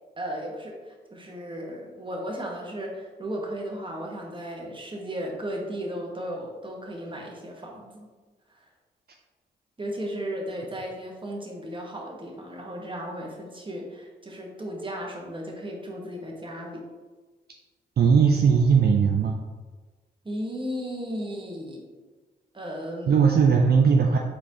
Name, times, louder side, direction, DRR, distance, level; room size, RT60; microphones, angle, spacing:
voice 1, 0.2-8.1 8.5-8.6 9.8-16.9 20.2-21.9 22.5-23.2, equal, 25° right, 0 dB, 1.3 m, -35 dB
voice 2, 18.0-19.4 23.1-24.2, right 6 dB, 55° right, 1 dB, 0.5 m, -19 dB
4.5 x 4.1 x 2.8 m, 1.3 s
supercardioid pair, 40°, 20 cm